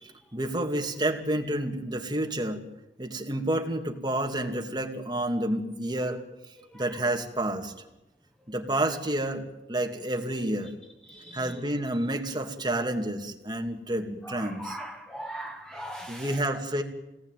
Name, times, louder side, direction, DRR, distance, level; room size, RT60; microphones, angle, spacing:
voice 1, 0.3-2.6 3.0-6.2 6.7-7.7 8.5-9.4 9.7-10.7 11.3-14.8 16.1-16.8, right 1 dB, 25° right, 2.5 m, -29 dB
voice 2, 6.6-7.1 11.1-11.6 14.2-16.5, right 1 dB, 5° left, 1.0 m, -41 dB
26.0 x 19.5 x 9.2 m
head